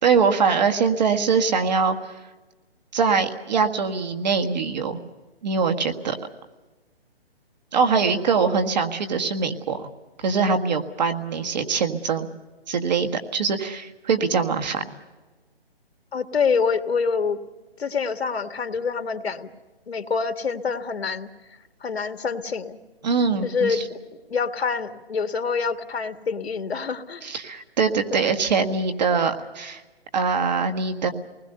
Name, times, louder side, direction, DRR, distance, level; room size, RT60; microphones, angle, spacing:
voice 1, 0.0-2.0 2.9-5.0 5.4-6.2 7.7-9.9 10.2-12.3 12.7-14.8 23.0-23.8 27.2-29.8 30.1-31.1, right 5 dB, 45° right, 6 dB, 1.8 m, -23 dB
voice 2, 16.1-17.4 17.8-19.5 19.9-21.3 21.8-22.8 23.4-24.0 24.3-27.3 28.1-28.3, left 5 dB, 75° left, 8 dB, 1.9 m, -26 dB
28.0 x 20.5 x 6.7 m, 1.2 s
hypercardioid pair, 165°, 31 cm